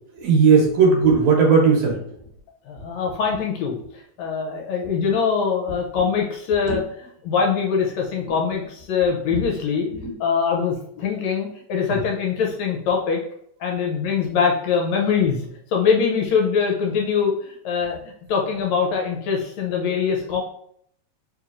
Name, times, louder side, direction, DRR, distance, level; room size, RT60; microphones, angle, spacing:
voice 1, 0.1-2.1 6.0-6.1 6.7-6.8 9.3-9.4 9.9-10.1 11.9-12.0, right 5 dB, 70° right, 0 dB, 2.1 m, -17 dB
voice 2, 2.7-3.8 4.2-9.9 10.2-13.2 13.6-18.0 18.3-20.4, left 6 dB, 75° left, 0 dB, 1.7 m, -23 dB
4.6 x 2.9 x 2.5 m, 0.68 s
omnidirectional pair, 3.4 m